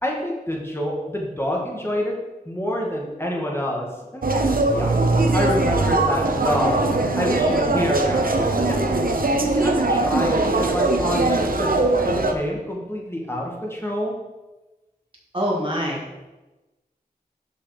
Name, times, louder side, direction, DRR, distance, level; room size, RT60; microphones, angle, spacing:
voice 1, 0.0-2.1 2.5-4.3 4.7-4.9 5.3-6.9 7.2-8.3 8.7-8.8 9.4-11.7 12.0-14.1, equal, 15° left, -2 dB, 2.0 m, -27 dB
sound 1, 4.2-12.3, right 2 dB, 65° right, 0.8 m, -21 dB
voice 2, 9.3-9.7 15.3-16.0, equal, 35° right, -4 dB, 2.2 m, -26 dB
6.4 x 5.8 x 5.0 m, 1.1 s
wide cardioid pair, 45°, 16 cm